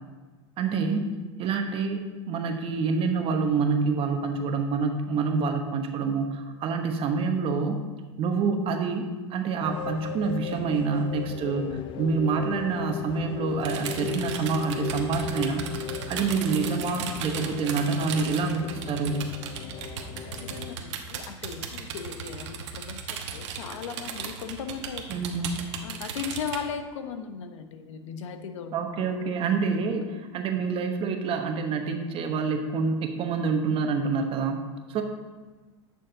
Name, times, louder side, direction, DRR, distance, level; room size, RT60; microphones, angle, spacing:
voice 1, 0.6-1.1 1.4-2.0 2.3-7.8 8.2-15.7 16.1-19.2 25.1-25.5 28.7-35.0, right 4 dB, 35° right, 5 dB, 1.1 m, -27 dB
sound 1, 9.6-20.8, left 8 dB, 35° left, 0.4 m, -37 dB
sound 2, 13.6-26.6, right 7 dB, 70° right, 1.1 m, -36 dB
voice 2, 20.2-25.2 25.8-29.1, left 7 dB, 80° left, 8 dB, 0.9 m, -37 dB
9.1 x 6.4 x 3.9 m, 1.3 s
hypercardioid pair, 115°, 15 cm